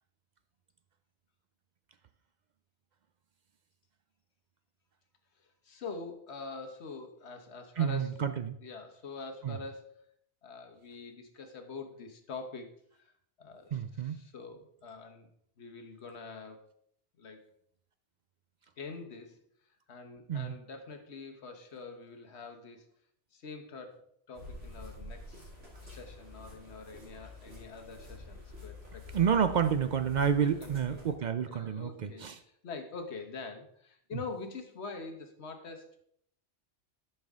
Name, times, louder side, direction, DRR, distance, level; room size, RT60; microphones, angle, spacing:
voice 1, 5.4-8.2 8.6-10.1 10.4-12.7 13.0-13.1 13.4-15.3 15.6-16.7 17.2-17.5 18.8-19.4 19.9-22.9 23.3-25.5 25.8-29.1 30.4-36.0, left 4 dB, 65° left, 6 dB, 1.3 m, -45 dB
voice 2, 7.8-8.6 9.4-9.6 13.7-14.2 20.3-20.5 29.1-32.3, right 7 dB, 55° right, 10 dB, 0.5 m, -29 dB
sound 1, 24.3-31.1, left 2 dB, 85° right, 2.9 m, -48 dB
11.5 x 5.6 x 3.6 m, 0.68 s
omnidirectional pair, 1.2 m